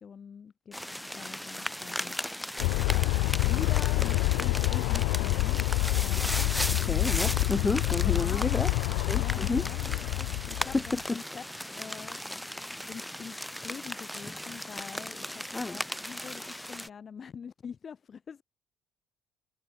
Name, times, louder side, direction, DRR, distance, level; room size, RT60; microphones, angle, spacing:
voice 1, 0.0-5.7 6.0-6.4 8.0-8.7 9.1-12.5 12.9-18.4, left 6 dB, 40° left, 2.1 m, -45 dB
sound 1, 0.7-16.9, equal, 5° left, 0.5 m, -37 dB
Aircraft, 2.6-11.0, left 26 dB, 65° left, 0.4 m, -27 dB
voice 2, 6.7-8.7 9.1-10.0 10.6-11.2 15.5-15.8, left 3 dB, 20° left, 1.3 m, -31 dB
figure-of-eight pair, 50°, 0 cm